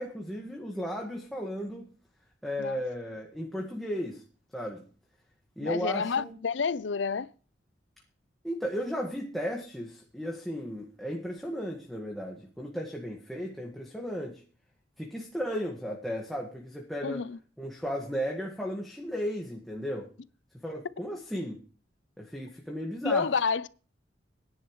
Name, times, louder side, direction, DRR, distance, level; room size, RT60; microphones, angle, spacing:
voice 1, 0.0-1.9 2.4-4.2 4.5-4.8 5.6-6.4 8.4-14.4 15.0-17.2 17.6-20.1 20.6-21.6 22.2-23.3, equal, ahead, 1.6 m, -35 dB
voice 2, 5.6-7.3 17.0-17.4 23.0-23.7, left 5 dB, 70° left, 0.6 m, -29 dB
19.0 x 10.5 x 3.2 m
head